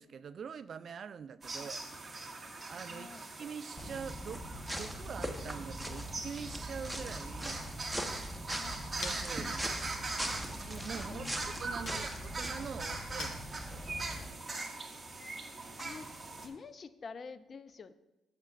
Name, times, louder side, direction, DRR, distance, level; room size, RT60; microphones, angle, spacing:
voice 1, 0.0-1.8 2.7-4.4 4.7-7.6 8.9-9.7 10.7-14.0, right 6 dB, 55° right, 14 dB, 0.3 m, -44 dB
sound 1, 1.4-16.5, right 3 dB, 25° right, 1.8 m, -42 dB
voice 2, 2.9-3.3 8.5-8.8 11.0-11.5 15.8-16.1 16.4-17.9, left 5 dB, 40° left, 12 dB, 0.5 m, -48 dB
sound 2, 3.8-14.3, equal, ahead, 1.0 m, -41 dB
Chink clink, 8.4-14.1, left 4 dB, 65° left, 1.4 m, -51 dB
14.0 x 6.6 x 2.5 m, 1.0 s
cardioid pair, 90°, 0 cm